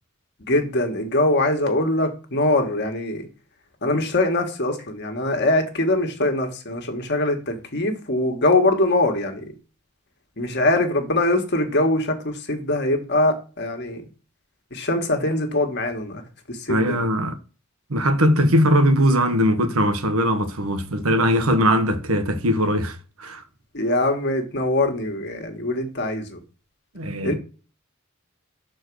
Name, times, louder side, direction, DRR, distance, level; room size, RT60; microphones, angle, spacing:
voice 1, 0.5-3.3 3.8-9.5 10.4-14.0 14.7-16.2 16.5-17.0 23.7-26.4 27.2-27.3, left 2 dB, 50° left, 1.6 m, -22 dB
voice 2, 16.7-17.3 17.9-23.4 26.9-27.3, equal, 80° right, 1.2 m, -20 dB
6.5 x 4.6 x 6.1 m
head